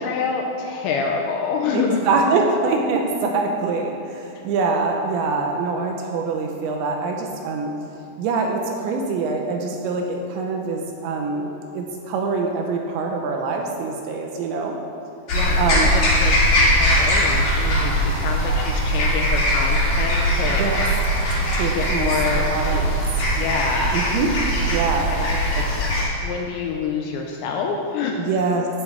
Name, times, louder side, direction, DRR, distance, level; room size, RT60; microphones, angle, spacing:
voice 1, 0.0-2.0 15.3-16.4 16.6-20.6 21.7-22.5 23.3-23.9 25.1-25.7 26.2-28.2, left 5 dB, 85° left, 2 dB, 2.8 m, -27 dB
voice 2, 1.7-7.7 8.2-14.8 15.6-15.9 20.5-20.8 21.5-22.9 23.9-24.3 24.7-25.1 28.2-28.7, right 4 dB, 80° right, 2 dB, 2.9 m, -24 dB
sound 1, 15.3-26.0, equal, 45° left, 3.2 m, -20 dB
15.5 x 6.2 x 4.6 m, 2.6 s
omnidirectional pair, 5.6 m